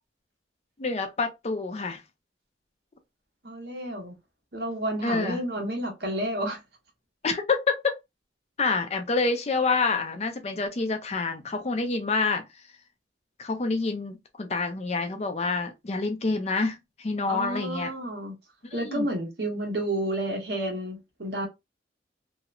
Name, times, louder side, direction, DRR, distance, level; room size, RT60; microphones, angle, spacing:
voice 1, 0.8-2.0 5.0-5.4 7.2-7.9 8.6-12.4 13.4-17.9 18.7-19.1, left 3 dB, 35° left, 0.4 m, -27 dB
voice 2, 3.4-4.1 4.5-6.6 17.3-18.4 18.7-21.5, right 1 dB, 65° right, 1.0 m, -30 dB
2.9 x 2.1 x 2.4 m
head